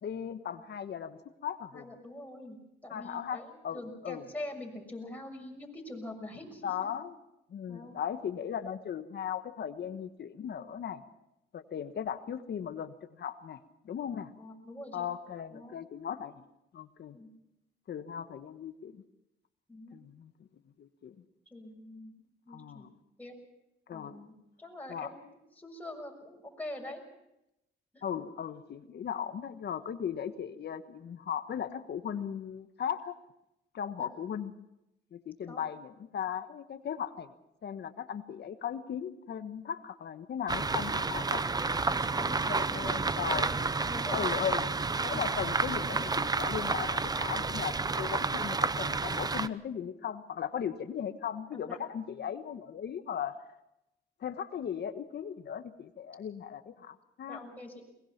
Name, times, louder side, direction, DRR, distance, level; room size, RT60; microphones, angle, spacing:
voice 1, 0.0-1.9 2.9-4.2 6.6-7.2 7.5-11.0 11.5-14.3 14.9-16.4 16.7-17.2 17.9-19.0 19.9-20.3 20.8-21.1 22.5-22.9 23.9-24.2 24.9-25.1 28.0-33.2 33.7-34.5 35.1-37.3 37.6-41.4 42.2-43.5 44.1-44.7 45.0-53.4 54.2-57.4, left 8 dB, 55° left, 10 dB, 1.4 m, -37 dB
voice 2, 1.7-6.9 7.7-8.0 14.4-15.1 15.5-15.8 17.1-17.3 19.7-20.0 21.5-22.9 23.2-23.3 23.9-27.0 27.9-28.0 34.0-34.1 35.5-35.6 41.3-44.3 45.1-45.2 51.5-51.8 57.3-57.8, left 1 dB, 10° left, 1 dB, 6.4 m, -45 dB
sound 1, 40.5-49.5, right 3 dB, 20° right, 0.7 m, -30 dB
22.5 x 20.5 x 5.9 m, 0.87 s
cardioid pair, 90°, 20 cm